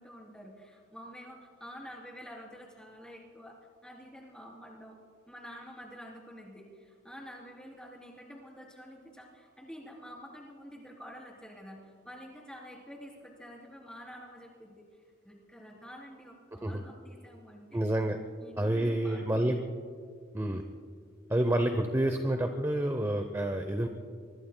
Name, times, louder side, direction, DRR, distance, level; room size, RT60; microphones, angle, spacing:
voice 1, 0.0-3.5 3.8-5.0 5.3-14.8 15.2-17.8 18.4-19.5, equal, 5° left, -2 dB, 3.3 m, -48 dB
voice 2, 17.7-18.2 18.6-19.6 20.3-20.6 21.3-23.9, right 1 dB, 15° right, 6 dB, 0.7 m, -28 dB
25.0 x 24.0 x 2.2 m, 2.2 s
head